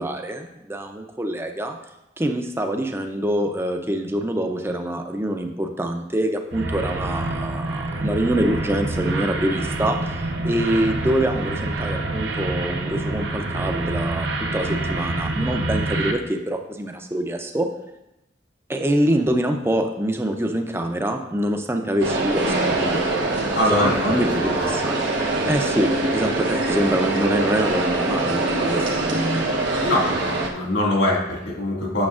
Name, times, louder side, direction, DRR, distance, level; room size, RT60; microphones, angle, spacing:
voice 1, 0.0-1.8 2.2-17.7 18.7-25.0 25.5-29.4, right 1 dB, 15° right, 5 dB, 0.5 m, -25 dB
sound 1, 6.5-16.1, right 2 dB, 70° right, 0.7 m, -27 dB
sound 2, 22.0-30.5, right 2 dB, 85° right, 1.1 m, -23 dB
voice 2, 23.5-24.7 29.8-32.1, left 1 dB, 80° left, -4 dB, 2.1 m, -23 dB
8.6 x 6.8 x 2.5 m, 0.91 s
head